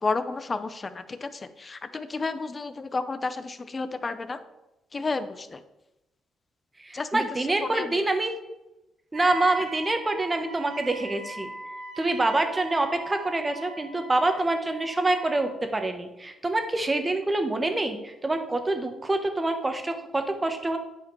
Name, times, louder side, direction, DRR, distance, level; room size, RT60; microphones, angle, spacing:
voice 1, 0.0-4.4 4.9-5.6 6.9-7.2 7.6-8.0, left 3 dB, 30° left, 12 dB, 0.7 m, -31 dB
voice 2, 6.8-8.3 9.1-11.5 12.0-20.8, right 2 dB, 20° right, 6 dB, 1.1 m, -26 dB
Wind instrument woodwind instrument, 9.1-15.6, right 2 dB, 60° right, 1.1 m, -40 dB
9.1 x 5.1 x 4.7 m, 0.96 s
cardioid pair, 90°, 0 cm